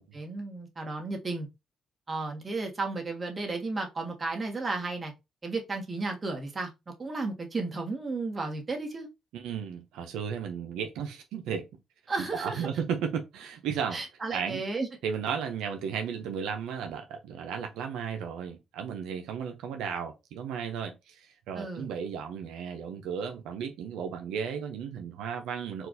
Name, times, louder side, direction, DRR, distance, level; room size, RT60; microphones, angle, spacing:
voice 1, 0.0-1.5 2.1-5.1 5.4-6.7 7.0-9.1 12.1-12.7 13.9-14.9 21.5-21.9, right 3 dB, 30° right, 1.5 m, -33 dB
voice 2, 9.3-11.7 12.2-14.0 14.3-14.6 15.0-25.9, right 7 dB, 90° right, 0.6 m, -34 dB
4.4 x 2.5 x 3.9 m
cardioid pair, 90°, 0 cm